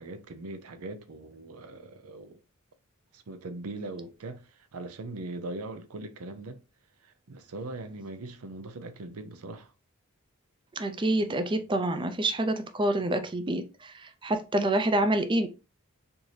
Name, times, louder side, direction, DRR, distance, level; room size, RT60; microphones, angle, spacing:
voice 1, 0.0-2.4 3.1-6.6 7.0-9.7, right 2 dB, 90° right, 0.6 m, -40 dB
voice 2, 10.8-15.5, right 1 dB, 20° right, 0.4 m, -27 dB
4.4 x 2.6 x 3.2 m
head